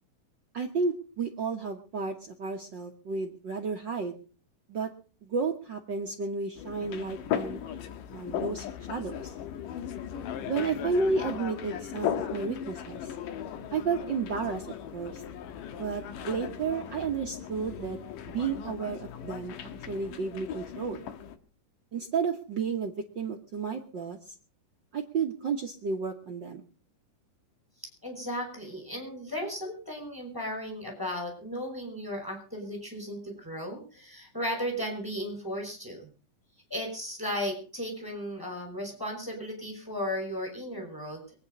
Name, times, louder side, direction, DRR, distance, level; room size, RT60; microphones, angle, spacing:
voice 1, 0.5-4.2 4.7-4.9 5.2-7.6 8.1-9.3 10.5-13.1 13.7-14.7 14.9-15.2 15.8-18.0 18.3-19.5 19.9-21.1 21.9-24.3 24.9-26.6, right 5 dB, 55° right, 3 dB, 1.3 m, -32 dB
sound 1, 6.6-21.4, left 9 dB, 85° left, 2.8 m, -37 dB
voice 2, 27.8-36.1 36.7-41.2, equal, 5° right, 1 dB, 5.3 m, -35 dB
23.5 x 9.6 x 5.3 m, 0.38 s
omnidirectional pair, 3.7 m